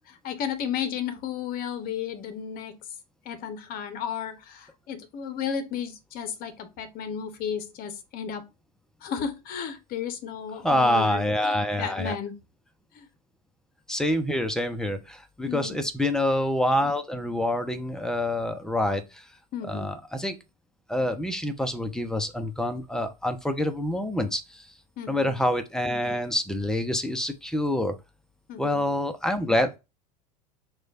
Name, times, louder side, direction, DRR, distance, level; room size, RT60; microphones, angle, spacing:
voice 1, 0.2-2.8 3.2-8.5 9.0-12.4 12.9-13.1 15.5-15.8 19.5-19.9 25.0-25.3 28.5-28.8, left 8 dB, 45° left, 0.8 m, -33 dB
voice 2, 10.6-12.1 13.9-19.3 19.6-20.4 20.9-24.7 25.1-27.9 28.6-29.8, left 1 dB, 5° left, 0.6 m, -26 dB
3.0 x 2.4 x 4.1 m
hypercardioid pair, 85°, 21 cm